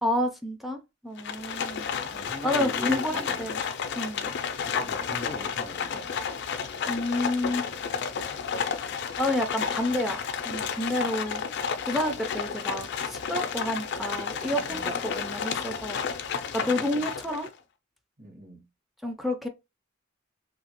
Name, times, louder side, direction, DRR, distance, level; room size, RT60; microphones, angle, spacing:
voice 1, 0.0-1.9 2.4-3.6 4.0-4.3 6.9-7.7 9.2-11.4 11.8-16.0 16.5-17.5 19.0-19.5, left 1 dB, ahead, 0.4 m, -30 dB
Livestock farm animals working animals, 1.2-17.5, left 6 dB, 60° left, 0.4 m, -31 dB
voice 2, 2.1-3.4 4.6-6.1 14.5-15.0 16.6-17.1 18.2-18.6, left 1 dB, 50° right, 1.5 m, -41 dB
2.9 x 2.7 x 2.9 m
head